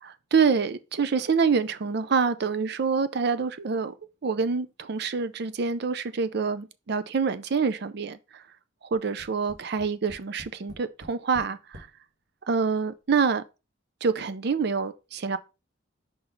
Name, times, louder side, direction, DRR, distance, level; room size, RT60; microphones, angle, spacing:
voice 1, 0.0-3.9 4.2-8.4 8.8-11.9 12.5-13.4 14.0-15.4, right 5 dB, 55° right, 0.5 m, -26 dB
Tap, 8.9-11.9 12.8-12.9 13.2-13.3, equal, 90° right, 1.4 m, -47 dB
5.3 x 3.9 x 4.4 m
head